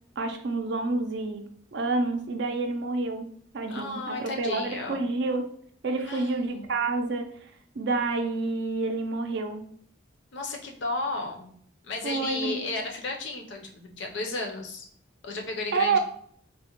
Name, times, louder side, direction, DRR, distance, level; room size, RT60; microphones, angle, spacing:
voice 1, 0.2-1.4 1.7-3.3 3.5-5.5 5.8-7.3 7.8-9.6 12.0-12.6 15.7-16.0, right 3 dB, 55° right, 6 dB, 0.4 m, -28 dB
voice 2, 3.7-5.0 6.1-6.7 10.3-11.5 11.8-14.8 15.2-16.0, left 2 dB, 60° left, 2 dB, 0.6 m, -33 dB
3.7 x 2.1 x 2.9 m, 0.62 s
head